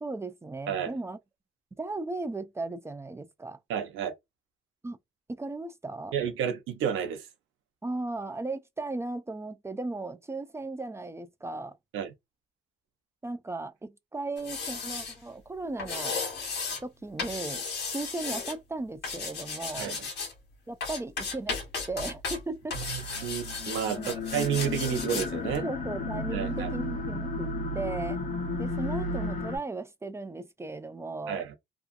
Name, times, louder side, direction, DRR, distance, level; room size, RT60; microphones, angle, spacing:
voice 1, 0.0-1.2 1.8-3.6 4.8-5.0 5.3-6.1 7.8-11.8 13.2-16.2 16.8-17.6 17.9-19.9 20.7-22.8 23.9-24.2 25.6-28.2 28.6-31.5, right 2 dB, 15° right, 0.3 m, -36 dB
voice 2, 3.7-4.1 6.1-7.3 11.9-12.1 19.8-20.1 22.9-25.6 26.3-26.7 31.3-31.5, right 8 dB, 90° right, 0.7 m, -31 dB
sound 1, 14.4-15.1 15.8-16.8 17.2-18.5 19.0-20.3 20.8-22.4 22.7-25.3 25.5-25.6, left 4 dB, 60° left, 1.1 m, -35 dB
sound 2, 22.7-29.6, left 2 dB, 40° left, 0.8 m, -33 dB
2.6 x 2.4 x 2.4 m
cardioid pair, 90°, 20 cm